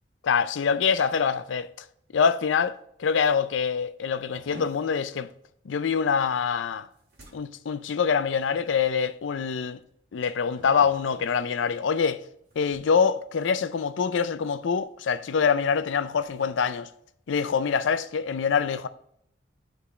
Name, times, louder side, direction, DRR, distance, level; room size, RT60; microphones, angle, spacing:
voice 1, 0.2-1.7 2.1-5.3 5.7-6.9 7.3-9.8 10.1-12.2 12.6-16.9 17.3-18.9, left 6 dB, 80° left, 0.4 m, -25 dB
sound 1, 4.3-14.0 14.2-14.6 15.0-15.2 15.8-17.7, equal, 55° right, 1.7 m, -52 dB
6.9 x 3.4 x 4.1 m
head